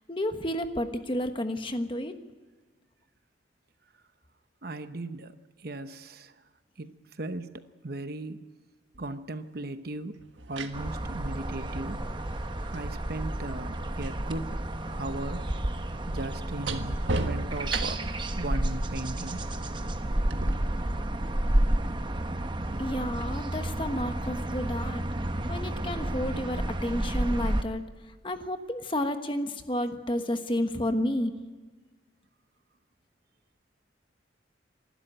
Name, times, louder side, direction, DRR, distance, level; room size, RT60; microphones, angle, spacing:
voice 1, 0.0-2.1 22.8-25.0 25.5-27.8 28.2-31.3, left 1 dB, 25° left, 7 dB, 1.2 m, -31 dB
voice 2, 4.6-5.4 5.6-6.3 6.8-8.4 9.0-10.2 10.5-12.0 12.7-15.5 16.1-19.5, right 2 dB, 50° right, 10 dB, 0.9 m, -37 dB
sound 1, 8.9-9.1 10.2-14.2 14.5-18.3 20.3-20.5, right 2 dB, 75° right, 1.5 m, -37 dB
sound 2, 10.7-27.6, right 1 dB, 25° right, 0.9 m, -31 dB
26.0 x 12.5 x 9.1 m, 1.4 s
head